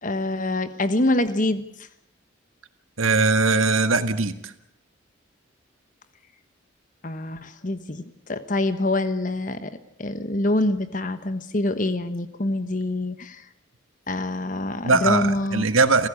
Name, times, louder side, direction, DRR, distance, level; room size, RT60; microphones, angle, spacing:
voice 1, 0.0-1.6 7.0-9.7 10.0-13.4 14.1-15.7, left 1 dB, 40° left, 11 dB, 1.1 m, -25 dB
voice 2, 3.0-4.3 14.8-16.1, right 3 dB, 90° right, 10 dB, 1.8 m, -20 dB
29.0 x 16.0 x 8.5 m, 0.75 s
head